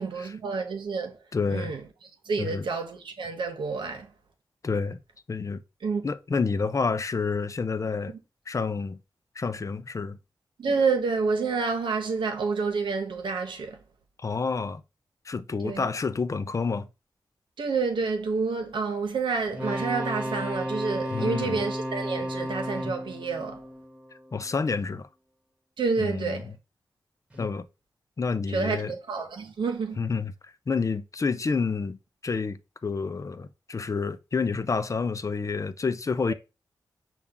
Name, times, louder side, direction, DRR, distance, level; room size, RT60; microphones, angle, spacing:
voice 1, 0.0-1.1 1.5-1.8 2.3-4.1 5.8-6.0 10.6-13.8 15.6-15.8 17.6-23.6 25.8-26.5 28.5-30.0, right 4 dB, 85° right, 0.9 m, -28 dB
voice 2, 1.3-1.7 2.4-2.7 4.6-5.0 5.3-5.6 6.0-8.1 8.5-9.0 9.4-10.2 14.2-14.8 15.3-16.9 21.1-21.6 24.3-25.1 26.0-26.5 27.4-27.7 28.2-29.0 30.0-30.3 30.7-36.3, left 4 dB, 40° left, 0.4 m, -29 dB
sound 1, 19.5-24.5 27.3-27.4, equal, 15° right, 1.1 m, -33 dB
5.6 x 2.4 x 3.7 m
cardioid pair, 65°, 8 cm